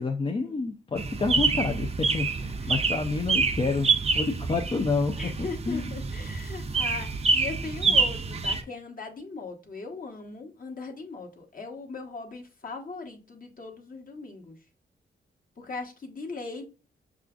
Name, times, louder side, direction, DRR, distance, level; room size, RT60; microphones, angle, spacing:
voice 1, 0.0-5.9 7.9-8.0, left 3 dB, 25° left, 0.4 m, -29 dB
sound 1, 1.0-8.6, right 4 dB, 30° right, 0.5 m, -27 dB
voice 2, 5.2-14.6 15.6-16.7, left 4 dB, 45° left, 1.1 m, -39 dB
5.8 x 2.4 x 2.4 m
cardioid pair, 75°, 20 cm